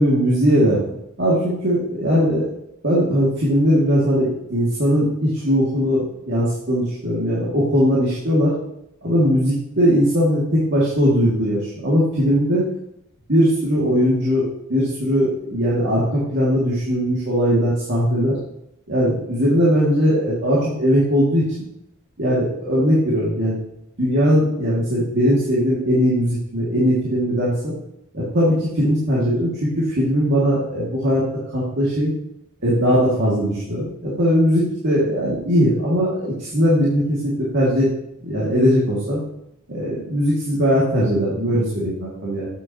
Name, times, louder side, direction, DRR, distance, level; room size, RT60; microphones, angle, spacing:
voice 1, 0.0-2.5 2.8-8.5 9.0-12.7 13.3-18.4 18.9-21.6 22.2-23.6 24.0-27.7 28.1-31.3 31.5-32.1 32.6-37.9 38.2-39.2 39.7-42.5, equal, 55° right, -8 dB, 2.2 m, -19 dB
8.3 x 7.9 x 2.9 m, 0.79 s
head